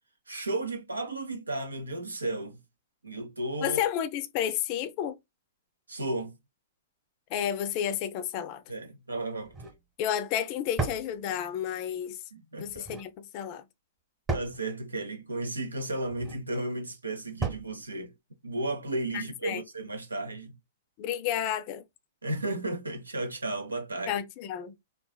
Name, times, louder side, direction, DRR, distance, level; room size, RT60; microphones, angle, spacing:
voice 1, 0.3-2.6 3.0-3.8 5.9-6.3 8.7-9.5 12.3-12.9 14.3-18.1 18.4-20.5 22.2-24.1, right 2 dB, 80° right, 0.7 m, -34 dB
voice 2, 3.6-5.2 7.3-8.6 10.0-12.2 12.6-13.6 19.1-19.6 21.0-21.8 24.1-24.7, left 10 dB, 40° left, 0.4 m, -31 dB
sound 1, 9.4-9.8 10.8-11.1 12.7-13.1 14.3-14.6 16.0-16.4 17.4-17.7, right 3 dB, 15° right, 1.0 m, -33 dB
3.9 x 2.3 x 2.2 m
figure-of-eight pair, 105°, 0 cm